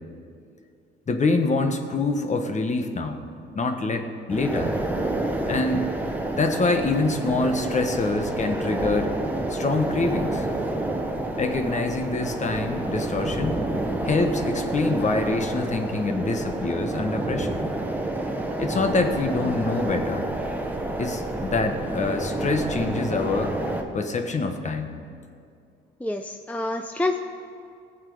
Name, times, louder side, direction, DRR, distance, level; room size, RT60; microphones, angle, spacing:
voice 1, 1.1-3.2 3.5-4.7 5.5-5.9 6.3-9.1 9.5-10.5 11.4-13.7 14.0-17.6 18.6-20.3 21.0-23.5 23.9-25.0, left 3 dB, 35° left, 6 dB, 1.3 m, -25 dB
sound 1, 4.3-23.8, right 1 dB, 10° right, 1.3 m, -29 dB
voice 2, 26.0-27.2, left 2 dB, 5° left, 6 dB, 0.5 m, -27 dB
18.5 x 7.6 x 4.9 m, 2.4 s
cardioid pair, 90°, 20 cm